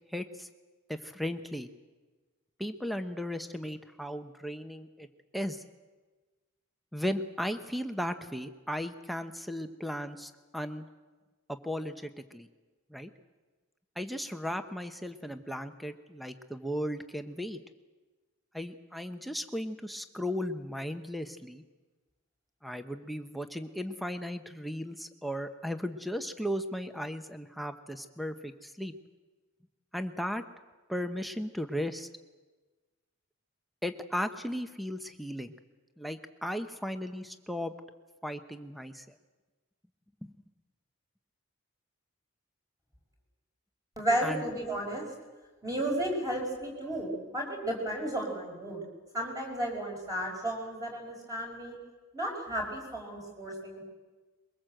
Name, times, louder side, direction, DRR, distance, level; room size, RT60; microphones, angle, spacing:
voice 1, 0.1-0.5 0.9-1.7 2.6-5.1 5.3-5.6 6.9-10.9 11.5-12.5 12.9-13.1 14.0-17.6 18.5-21.6 22.6-28.9 29.9-30.4 30.9-32.1 33.8-35.5 36.0-37.7 38.2-39.1 40.2-40.3 44.2-44.4, equal, ahead, 7 dB, 0.9 m, -36 dB
voice 2, 44.0-45.0 45.6-48.8 49.1-51.8 52.1-53.9, right 1 dB, 15° right, 0 dB, 5.6 m, -33 dB
23.0 x 22.5 x 7.8 m, 1.3 s
head